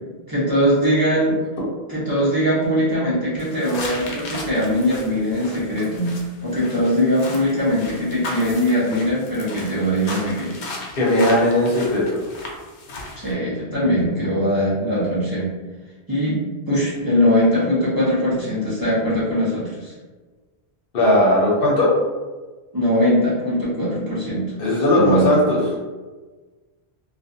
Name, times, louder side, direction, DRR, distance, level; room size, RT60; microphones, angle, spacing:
voice 1, 0.3-1.4 1.9-6.1 6.4-10.5 13.1-15.5 16.1-19.9 22.7-24.5 24.8-25.4, equal, 25° right, -10 dB, 0.7 m, -21 dB
sound 1, 3.4-13.3, left 2 dB, 85° left, 0.9 m, -36 dB
voice 2, 11.0-12.2 20.9-21.9 24.6-25.6, left 1 dB, 60° left, -4 dB, 0.9 m, -17 dB
2.5 x 2.2 x 2.5 m, 1.3 s
omnidirectional pair, 1.1 m